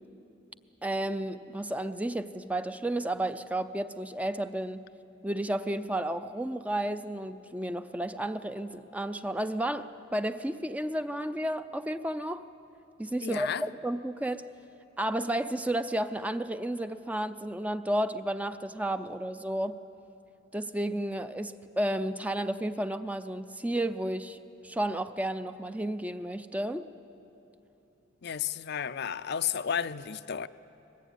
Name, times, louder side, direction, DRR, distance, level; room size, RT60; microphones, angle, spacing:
voice 1, 0.8-4.8 5.2-12.5 13.0-14.5 15.0-19.7 20.5-24.4 24.6-26.9, right 1 dB, 5° right, 10 dB, 0.5 m, -32 dB
voice 2, 13.2-13.6 28.2-30.5, left 8 dB, 55° left, 12 dB, 0.5 m, -32 dB
22.5 x 20.5 x 9.3 m, 2.9 s
head